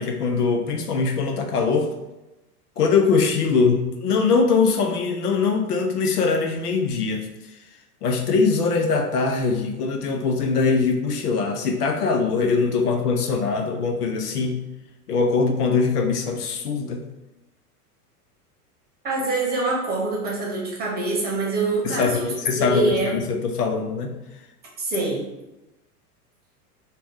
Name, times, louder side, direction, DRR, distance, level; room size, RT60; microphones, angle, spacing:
voice 1, 0.0-1.9 2.8-7.3 8.0-14.6 15.1-17.0 21.8-24.2, left 4 dB, 75° left, 4 dB, 0.6 m, -22 dB
voice 2, 19.0-22.3 22.7-23.1 24.8-25.2, right 3 dB, 20° right, -3 dB, 0.9 m, -25 dB
2.8 x 2.1 x 3.3 m, 0.98 s
figure-of-eight pair, 90°, 47 cm